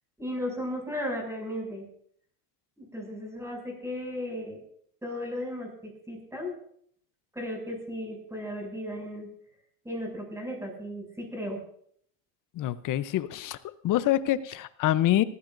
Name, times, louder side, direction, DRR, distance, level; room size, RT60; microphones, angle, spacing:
voice 1, 0.2-1.9 2.8-4.6 5.0-6.5 7.3-9.3 9.8-11.6, left 1 dB, 5° right, 1 dB, 6.8 m, -35 dB
voice 2, 12.5-13.6 13.8-15.2, left 13 dB, 40° left, 14 dB, 0.8 m, -26 dB
19.0 x 15.0 x 2.6 m, 0.64 s
supercardioid pair, 105°, 47 cm